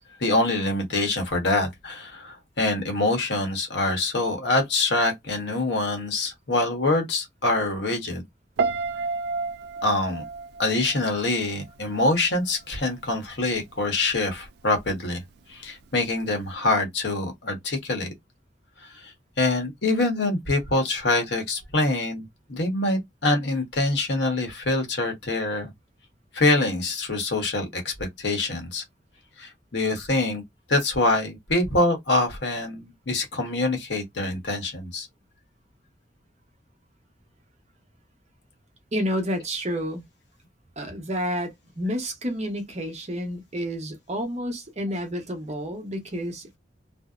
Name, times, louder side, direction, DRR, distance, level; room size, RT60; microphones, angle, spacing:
voice 1, 0.2-8.2 9.8-10.3 10.6-15.2 15.5-18.1 18.8-25.7 26.3-28.8 29.4-30.4 30.7-35.1, left 2 dB, 70° left, 1.0 m, -25 dB
Piano, 8.6-11.7 12.0-12.4, right 4 dB, 60° right, 0.3 m, -30 dB
voice 2, 38.9-40.0 40.8-46.6, equal, 40° right, 0.8 m, -30 dB
2.6 x 2.0 x 2.4 m
head